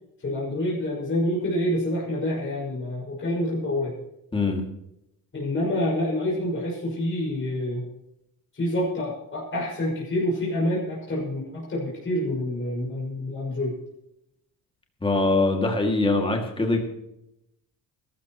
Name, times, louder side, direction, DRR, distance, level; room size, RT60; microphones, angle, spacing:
voice 1, 0.2-3.9 5.3-7.8 8.5-13.8, left 1 dB, 35° left, -4 dB, 5.8 m, -27 dB
voice 2, 4.3-4.6 15.0-16.8, left 2 dB, 15° left, 2 dB, 2.3 m, -22 dB
21.0 x 13.0 x 3.1 m, 0.82 s
cardioid pair, 145°, 36 cm